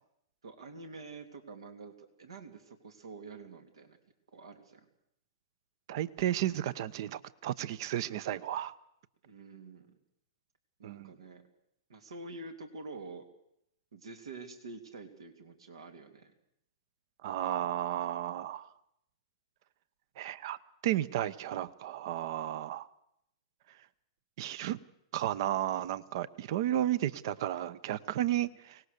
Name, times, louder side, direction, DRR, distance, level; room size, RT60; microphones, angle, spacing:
voice 1, 0.4-4.0 4.3-4.8 9.2-9.9 10.8-11.4 11.9-13.2 13.9-16.3 17.5-17.6, right 3 dB, 80° right, 6 dB, 3.0 m, -47 dB
voice 2, 5.9-8.7 10.8-11.1 17.2-18.7 20.2-20.6 20.8-22.9 24.4-24.8 25.1-28.8, right 12 dB, 55° right, 18 dB, 0.9 m, -33 dB
24.0 x 19.0 x 6.8 m, 0.77 s
hypercardioid pair, 125°, 3 cm